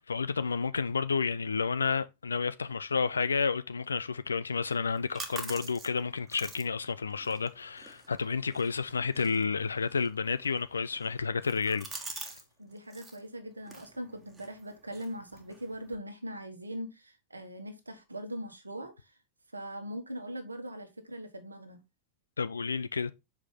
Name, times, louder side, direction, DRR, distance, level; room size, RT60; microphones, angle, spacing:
voice 1, 0.1-12.3 22.4-23.1, left 5 dB, 75° left, 0.5 m, -31 dB
sound 1, 4.7-12.5 12.7-13.2 13.6-16.0, right 3 dB, 15° right, 1.4 m, -47 dB
voice 2, 12.6-19.1 19.5-21.8, equal, 80° right, 1.2 m, -41 dB
6.3 x 4.8 x 3.7 m
figure-of-eight pair, 90°, 0 cm